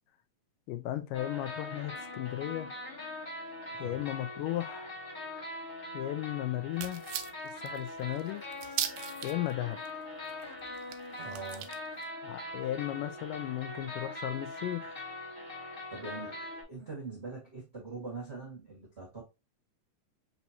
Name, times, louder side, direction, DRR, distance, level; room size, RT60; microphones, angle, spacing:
voice 1, 0.7-2.7 3.8-4.9 5.9-7.0 7.6-8.4 9.2-9.8 12.2-15.0, left 14 dB, 85° left, 2.2 m, -35 dB
sound 1, 1.1-16.6, left 2 dB, 50° left, 0.6 m, -42 dB
voice 2, 3.7-4.0 11.2-11.8 15.9-19.2, right 3 dB, 50° right, 0.7 m, -43 dB
sound 2, 6.8-9.5 9.9-10.0 10.2-12.1, right 11 dB, 80° right, 1.8 m, -38 dB
5.7 x 2.8 x 2.7 m
omnidirectional pair, 3.8 m